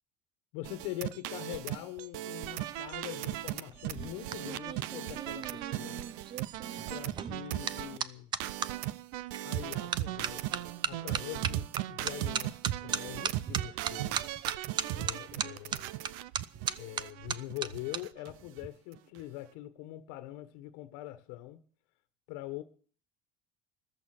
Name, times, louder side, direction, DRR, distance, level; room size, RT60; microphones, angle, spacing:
voice 1, 0.5-6.0 6.9-8.3 9.4-14.2 14.9-15.9 16.8-21.6 22.3-22.6, left 15 dB, 75° left, 1.4 m, -43 dB
sound 1, 0.6-8.0 8.4-18.3 18.6-18.7 19.0-19.2, right 15 dB, 80° right, 0.8 m, -38 dB
sound 2, 3.7-8.7 9.3-9.6 9.9-18.0 18.3-18.7, right 8 dB, 30° right, 0.7 m, -37 dB
14.5 x 13.0 x 6.1 m
cardioid pair, 160°, 17 cm